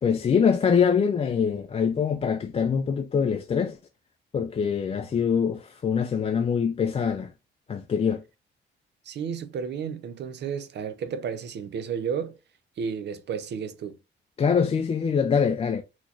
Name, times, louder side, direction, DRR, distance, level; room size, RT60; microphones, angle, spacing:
voice 1, 0.0-3.8 4.3-7.3 7.7-8.2 14.4-15.8, left 6 dB, 30° left, 0.4 m, -24 dB
voice 2, 9.1-12.4 12.8-14.0, right 7 dB, 60° right, 0.6 m, -32 dB
3.8 x 3.0 x 2.4 m
cardioid pair, 90°, 20 cm